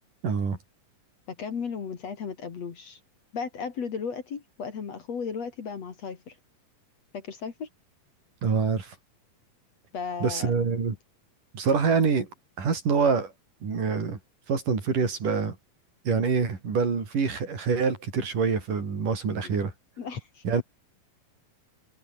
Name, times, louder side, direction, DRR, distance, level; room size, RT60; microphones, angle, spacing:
voice 1, 0.2-0.6 8.4-9.0 10.2-11.0 11.5-12.3 12.6-13.3 13.6-14.2 14.5-15.6 16.1-19.7 20.4-20.6, right 5 dB, 60° right, 6.0 m, -25 dB
voice 2, 1.3-3.0 3.3-6.4 7.1-7.7 9.9-10.5 19.4-19.5 20.0-20.6, left 6 dB, 50° left, 3.3 m, -35 dB
omnidirectional pair, 4.2 m